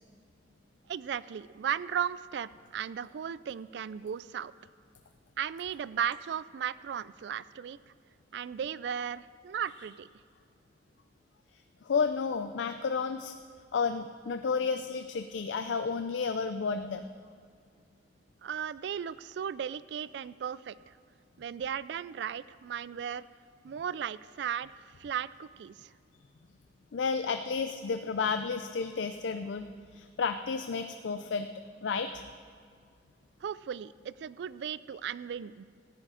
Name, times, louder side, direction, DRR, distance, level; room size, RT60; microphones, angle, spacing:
voice 1, 0.9-4.5 5.4-7.8 8.3-10.1 18.4-20.9 21.4-23.2 23.6-25.9 33.4-35.6, right 8 dB, 65° right, 18 dB, 0.3 m, -36 dB
voice 2, 11.9-13.3 13.7-17.0 26.9-29.7 29.9-31.5 31.8-32.2, left 5 dB, 85° left, 8 dB, 0.4 m, -31 dB
14.0 x 9.9 x 4.9 m, 2.1 s
head